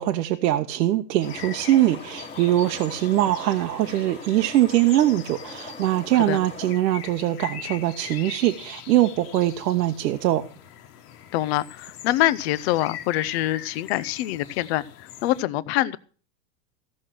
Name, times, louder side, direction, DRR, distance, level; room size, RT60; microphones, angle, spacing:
voice 1, 0.0-10.4, right 14 dB, 75° right, 6 dB, 1.0 m, -22 dB
sound 1, 1.2-15.4, left 10 dB, 65° left, 1.5 m, -42 dB
sound 2, 1.2-6.7, left 3 dB, 10° left, 1.5 m, -41 dB
voice 2, 11.3-16.0, left 15 dB, 40° left, 16 dB, 0.6 m, -25 dB
15.0 x 6.4 x 6.1 m, 0.42 s
supercardioid pair, 150°, 49 cm